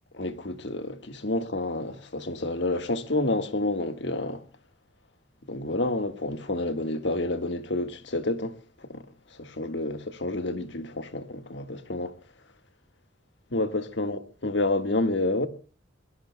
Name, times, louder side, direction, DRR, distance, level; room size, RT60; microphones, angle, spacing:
voice 1, 0.1-4.4 5.5-9.0 9.3-12.1 13.5-15.5, left 2 dB, 65° left, 1.6 m, -29 dB
27.5 x 21.5 x 2.2 m
head